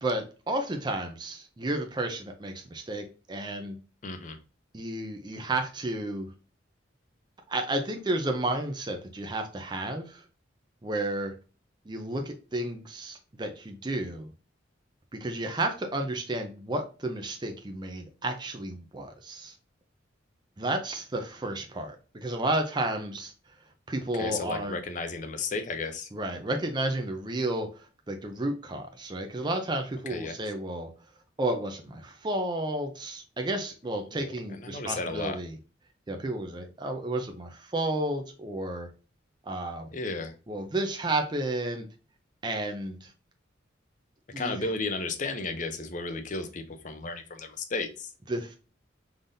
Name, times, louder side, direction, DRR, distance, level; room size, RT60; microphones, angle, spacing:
voice 1, 0.0-3.8 4.7-6.3 7.5-10.2 10.8-11.3 11.9-14.3 15.1-19.5 20.6-23.3 23.9-24.8 26.1-30.9 31.4-35.6 36.1-38.9 39.5-39.9 40.5-41.9 42.4-43.1 44.3-44.7 48.3-48.6, right 1 dB, 25° right, 0.5 m, -32 dB
voice 2, 4.0-4.4 24.2-26.1 30.1-30.4 34.2-35.4 39.9-40.3 44.4-48.1, left 3 dB, 40° left, 0.6 m, -33 dB
3.8 x 3.5 x 2.6 m
head